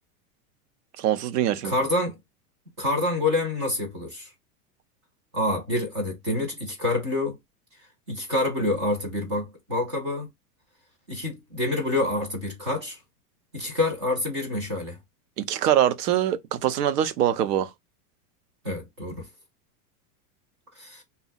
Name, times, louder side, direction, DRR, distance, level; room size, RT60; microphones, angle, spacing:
voice 1, 1.0-1.7 15.4-17.7, right 11 dB, 90° right, 0.7 m, -23 dB
voice 2, 1.6-2.2 2.8-4.3 5.3-7.3 8.1-10.3 11.1-13.0 13.5-15.0 18.6-19.2 20.8-21.0, left 2 dB, 20° right, 0.3 m, -27 dB
2.7 x 2.0 x 3.9 m
supercardioid pair, 170°, 46 cm